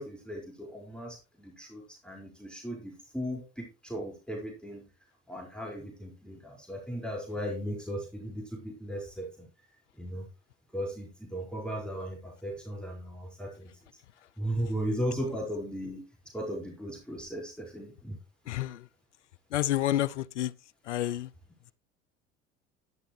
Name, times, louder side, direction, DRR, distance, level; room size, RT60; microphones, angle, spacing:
voice 1, 0.0-4.9 5.3-9.5 10.0-10.3 10.7-13.7 14.4-16.0 16.3-18.2, equal, 5° left, 5.0 m, -36 dB
voice 2, 18.5-18.8 19.5-20.5 20.9-21.3, left 13 dB, 80° left, 0.6 m, -29 dB
12.0 x 11.5 x 3.1 m
figure-of-eight pair, 65°, 35 cm